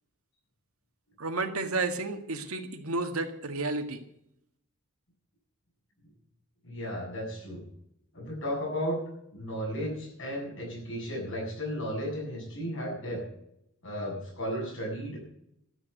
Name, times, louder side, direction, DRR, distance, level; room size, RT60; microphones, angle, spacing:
voice 1, 1.2-4.0, right 3 dB, 80° right, 6 dB, 1.8 m, -31 dB
voice 2, 6.6-7.6 8.1-9.0 9.3-13.2 13.8-15.3, equal, 65° left, -1 dB, 7.9 m, -34 dB
13.5 x 8.6 x 9.4 m, 0.76 s
head